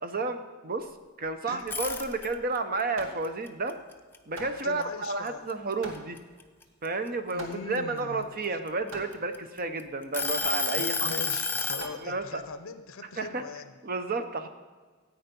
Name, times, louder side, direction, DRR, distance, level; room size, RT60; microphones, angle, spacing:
voice 1, 0.0-0.9 1.2-3.7 4.3-6.2 6.8-11.1 12.0-12.4 13.2-13.4 13.8-14.5, right 3 dB, 45° right, 8 dB, 0.8 m, -31 dB
sound 1, 1.6-2.6 3.0-4.8 5.3-5.5 6.0-7.8 8.5-9.6 10.1-11.9, left 4 dB, 10° left, 0.6 m, -30 dB
Hammer, 2.4-12.6, right 2 dB, 65° right, 1.8 m, -47 dB
voice 2, 4.6-5.5 7.3-8.3 10.8-13.7, left 4 dB, 70° left, 11 dB, 0.7 m, -40 dB
13.5 x 8.8 x 5.3 m, 1.5 s
head